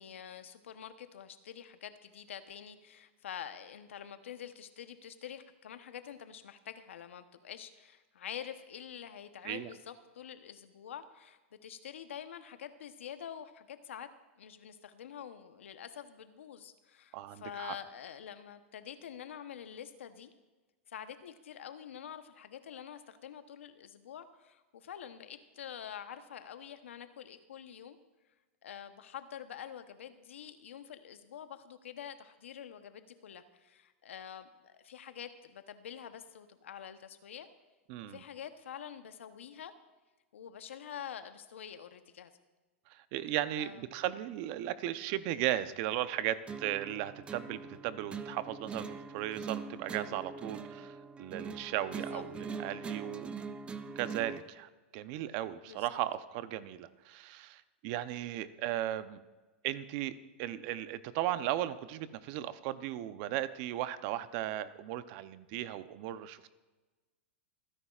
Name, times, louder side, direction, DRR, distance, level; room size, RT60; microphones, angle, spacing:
voice 1, 0.0-14.1 14.4-20.3 20.9-28.0 28.6-37.5 38.0-39.7 40.3-42.3 43.5-43.9 51.9-52.2 55.6-55.9, left 9 dB, 85° left, 10 dB, 0.9 m, -47 dB
voice 2, 17.1-17.8 37.9-38.2 42.9-53.3 54.0-59.2 59.6-66.5, right 13 dB, 50° right, 13 dB, 0.7 m, -36 dB
sound 1, 46.5-54.5, right 5 dB, 15° right, 0.6 m, -42 dB
27.0 x 10.0 x 2.5 m, 1.2 s
hypercardioid pair, 125°, 7 cm